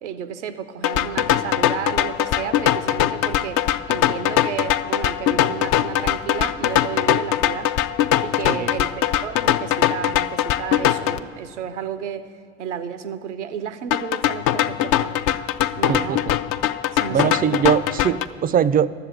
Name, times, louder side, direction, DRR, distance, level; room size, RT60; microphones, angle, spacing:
voice 1, 0.0-7.7 8.2-12.3 12.6-15.2 15.8-16.3 16.9-17.4, right 8 dB, 85° right, 12 dB, 0.6 m, -32 dB
sound 1, 0.8-11.2 13.9-18.3, left 12 dB, 60° left, 0.5 m, -21 dB
voice 2, 15.9-16.4 17.1-18.9, right 8 dB, 25° right, 17 dB, 0.4 m, -21 dB
12.0 x 7.4 x 7.8 m, 2.3 s
hypercardioid pair, 65°, 34 cm